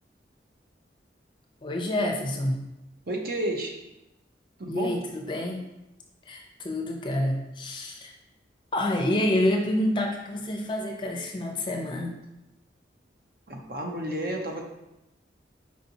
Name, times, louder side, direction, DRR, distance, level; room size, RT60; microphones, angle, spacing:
voice 1, 1.6-2.7 4.7-5.6 6.3-8.1 8.7-12.1, left 1 dB, 25° left, 1 dB, 0.5 m, -28 dB
voice 2, 3.1-3.8 4.6-4.9 13.5-14.6, right 1 dB, 55° right, 1 dB, 0.6 m, -31 dB
4.8 x 4.1 x 2.7 m, 0.91 s
head